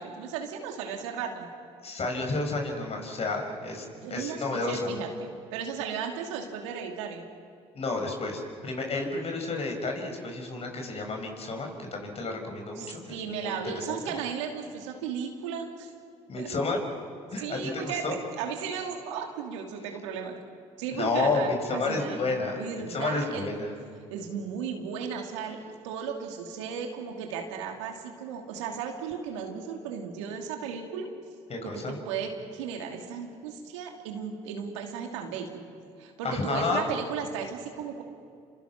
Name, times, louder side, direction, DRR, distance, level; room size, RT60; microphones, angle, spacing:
voice 1, 0.0-1.5 4.0-7.2 12.8-15.9 16.4-16.5 17.4-20.4 20.8-22.2 22.6-23.4 24.1-31.1 31.6-35.6 36.0-38.0, right 6 dB, 85° right, 2 dB, 2.7 m, -35 dB
voice 2, 1.8-4.9 7.7-14.0 16.3-16.8 17.3-18.2 20.9-23.7 31.5-32.0 36.2-36.8, left 3 dB, 45° left, 3 dB, 6.2 m, -31 dB
29.0 x 25.5 x 6.1 m, 2.4 s
hypercardioid pair, 60°, 15 cm